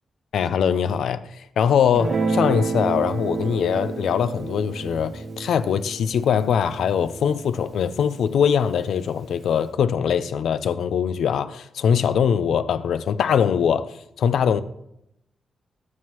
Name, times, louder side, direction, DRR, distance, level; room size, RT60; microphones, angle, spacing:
voice 1, 0.3-14.6, left 7 dB, 85° left, 0.5 m, -22 dB
Guitar, 1.9-8.5, right 3 dB, 55° right, 1.2 m, -30 dB
18.5 x 7.5 x 3.0 m
cardioid pair, 90°, 0 cm